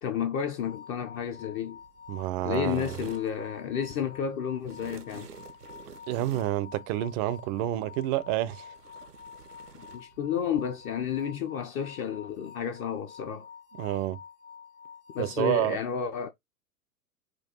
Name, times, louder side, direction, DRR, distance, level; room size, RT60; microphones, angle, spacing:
voice 1, 0.0-1.8 2.4-5.3 9.9-13.5 15.1-16.3, left 8 dB, 30° left, 0.5 m, -31 dB
sound 1, 0.5-15.7, left 7 dB, 60° left, 1.1 m, -48 dB
sound 2, 1.7-11.2, right 6 dB, 90° right, 0.8 m, -51 dB
voice 2, 2.1-3.0 6.1-8.7 13.8-14.2 15.2-15.8, right 14 dB, 30° right, 0.4 m, -29 dB
4.5 x 2.3 x 4.2 m
figure-of-eight pair, 100°, 46 cm